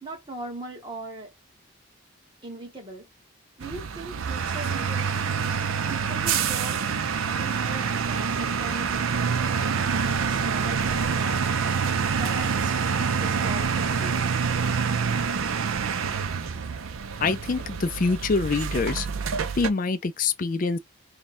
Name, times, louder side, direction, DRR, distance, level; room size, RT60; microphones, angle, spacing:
voice 1, 0.0-1.3 2.4-3.1 3.6-5.1 5.9-9.2 9.8-11.8 12.2-14.6, right 2 dB, 25° right, 1.2 m, -40 dB
sound 1, 3.6-19.7, right 6 dB, 80° right, 0.5 m, -26 dB
voice 2, 17.2-19.1 19.6-20.8, left 4 dB, 40° left, 0.4 m, -25 dB
3.5 x 2.2 x 4.1 m
head